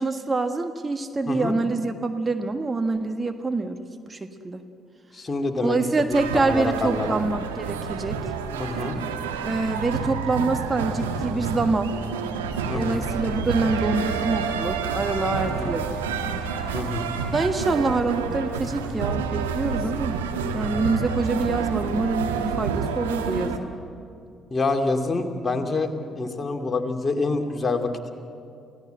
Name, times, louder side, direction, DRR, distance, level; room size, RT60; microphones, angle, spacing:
voice 1, 0.0-3.8 4.1-4.6 5.6-8.2 9.4-11.9 12.7-15.9 17.3-20.2 20.5-23.7, right 3 dB, 25° right, 7 dB, 1.5 m, -26 dB
voice 2, 5.1-5.8 6.1-7.2 8.5-9.0 12.7-13.0 15.5-15.7 16.7-17.1 24.5-28.1, left 3 dB, 30° left, 4 dB, 2.5 m, -27 dB
sound 1, 6.1-23.6, right 5 dB, 80° right, 1.4 m, -29 dB
28.5 x 16.5 x 8.0 m, 2.5 s
figure-of-eight pair, 45°, 0 cm